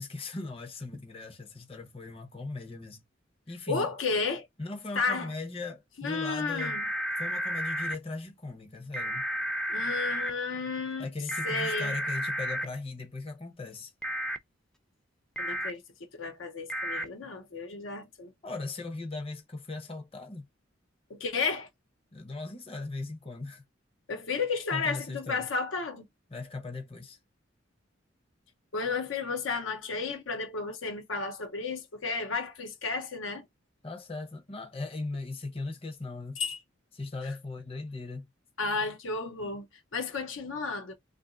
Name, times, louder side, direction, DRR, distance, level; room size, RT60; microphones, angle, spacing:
voice 1, 0.0-3.0 3.5-3.9 4.6-6.7 7.2-9.3 11.0-13.9 18.4-20.4 22.1-23.6 24.7-25.5 26.3-27.2 33.8-36.4 36.9-38.2, left 3 dB, 30° left, 0.7 m, -38 dB
voice 2, 3.7-4.5 4.9-5.3 6.0-6.8 9.7-11.1 11.4-12.0 15.4-15.8 16.2-18.3 21.1-21.7 24.1-26.1 28.7-33.4 36.4-36.6 37.2-37.3 38.6-39.7 39.9-40.9, left 4 dB, 80° left, 0.7 m, -32 dB
sound 1, 6.6-8.0 8.9-10.3 11.3-12.7 14.0-14.4 15.4-15.7 16.7-17.0, equal, 5° left, 0.3 m, -32 dB
2.9 x 2.6 x 3.7 m
head